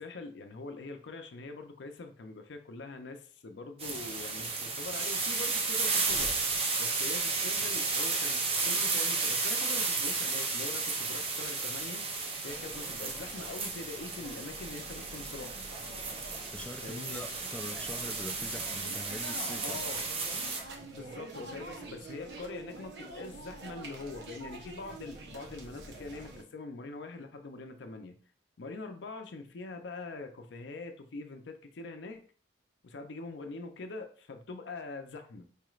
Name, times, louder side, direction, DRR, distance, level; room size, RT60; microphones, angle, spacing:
voice 1, 0.0-12.1 12.4-15.6 16.8-17.2 19.6-20.0 20.8-28.2 28.6-32.2 32.8-35.5, left 3 dB, 80° left, 6 dB, 0.5 m, -43 dB
sound 1, 3.8-20.6, right 4 dB, 30° right, 0.6 m, -33 dB
sound 2, 12.5-26.4, right 2 dB, 75° right, 0.8 m, -47 dB
voice 2, 16.5-19.8, left 1 dB, 5° left, 3 dB, 0.3 m, -42 dB
4.7 x 3.1 x 2.4 m, 0.42 s
head